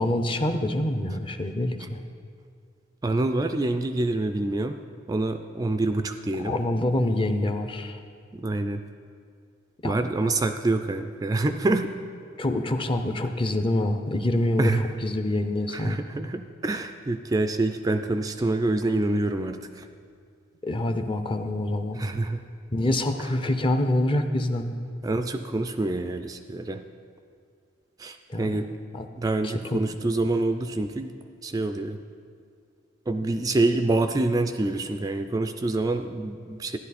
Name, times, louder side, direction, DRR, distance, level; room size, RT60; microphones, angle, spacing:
voice 1, 0.0-2.0 6.4-8.0 9.8-10.0 12.4-16.0 20.6-22.0 22.7-24.8 28.3-28.7 28.9-29.1 29.4-29.8 33.2-33.3, left 1 dB, 25° left, 8 dB, 0.6 m, -26 dB
voice 2, 3.0-4.8 5.1-6.5 8.3-8.8 9.8-11.9 14.6-14.8 15.7-19.9 22.0-22.4 25.0-26.8 28.0-28.7 29.2-31.1 31.4-32.0 33.1-36.8, right 2 dB, 20° right, 8 dB, 0.3 m, -26 dB
13.0 x 11.0 x 4.2 m, 2.3 s
head